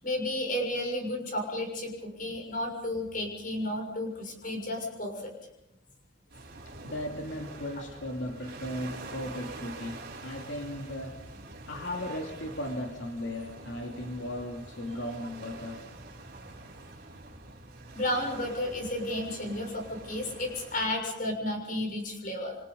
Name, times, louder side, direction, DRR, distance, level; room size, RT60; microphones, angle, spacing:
voice 1, 0.0-5.3 17.9-22.6, left 1 dB, 45° left, 2 dB, 6.8 m, -32 dB
sound 1, 6.3-20.9, right 2 dB, 50° right, 5.7 m, -46 dB
voice 2, 6.8-11.3 11.6-15.9, left 1 dB, 85° left, 2 dB, 2.7 m, -36 dB
28.5 x 25.0 x 5.4 m, 0.86 s
head